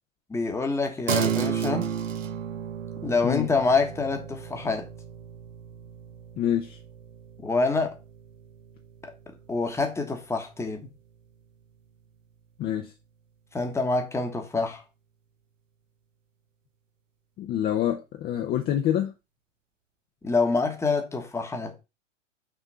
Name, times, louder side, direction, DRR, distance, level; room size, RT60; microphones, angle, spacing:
voice 1, 0.3-1.9 3.0-4.9 7.4-8.0 9.0-9.1 9.5-10.9 13.5-14.8 20.2-21.7, left 3 dB, 5° left, 1.3 m, -26 dB
sound 1, 1.1-10.8, right 8 dB, 75° right, 0.9 m, -34 dB
voice 2, 6.4-6.8 12.6-12.9 17.4-19.1, left 11 dB, 25° left, 0.8 m, -26 dB
6.3 x 3.6 x 5.5 m
figure-of-eight pair, 105°, 39 cm